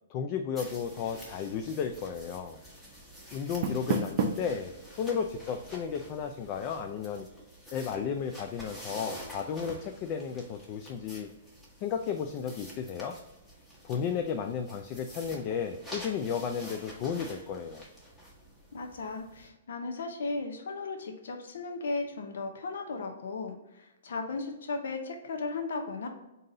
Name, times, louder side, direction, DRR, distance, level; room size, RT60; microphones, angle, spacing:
voice 1, 0.1-2.6 3.3-7.3 7.7-11.3 11.8-13.1 13.8-17.8, left 7 dB, 35° left, 5 dB, 0.3 m, -33 dB
sound 1, 0.5-19.5, equal, 5° left, 1.1 m, -48 dB
Door, 3.3-4.6, right 5 dB, 50° right, 0.5 m, -31 dB
voice 2, 18.7-26.1, left 3 dB, 70° left, 4 dB, 0.6 m, -36 dB
3.8 x 2.8 x 3.8 m, 0.98 s
hypercardioid pair, 140°, 0 cm